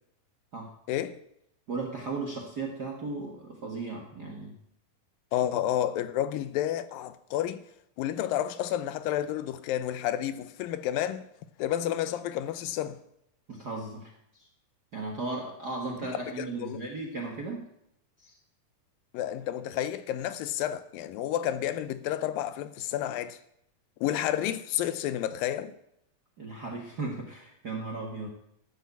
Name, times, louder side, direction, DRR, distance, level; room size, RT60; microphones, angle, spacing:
voice 1, 0.9-1.2 5.3-7.6 8.0-11.3 11.6-13.0 16.4-16.8 19.1-23.4 24.0-25.7, left 11 dB, 80° left, 2.4 m, -30 dB
voice 2, 1.7-4.6 13.5-14.5 14.9-17.6 18.2-18.4 26.4-28.3, right 3 dB, 50° right, 1.1 m, -36 dB
13.0 x 6.7 x 8.1 m
omnidirectional pair, 4.0 m